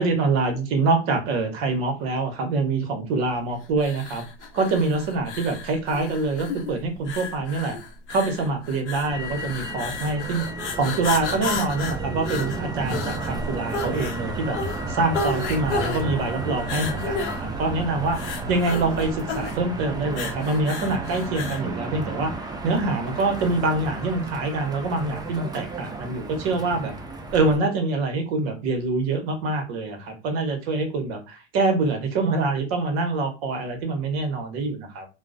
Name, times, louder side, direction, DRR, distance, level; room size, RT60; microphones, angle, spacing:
voice 1, 0.0-4.2 4.5-7.8 8.1-10.5 10.7-14.6 14.9-26.9 27.3-35.1, right 3 dB, 60° right, 5 dB, 1.0 m, -25 dB
sound 1, 3.8-21.7, left 4 dB, 85° left, 0.8 m, -33 dB
Motor vehicle (road), 9.1-27.6, right 2 dB, 10° right, 0.4 m, -33 dB
2.9 x 2.1 x 2.5 m, 0.31 s
hypercardioid pair, 90°, 34 cm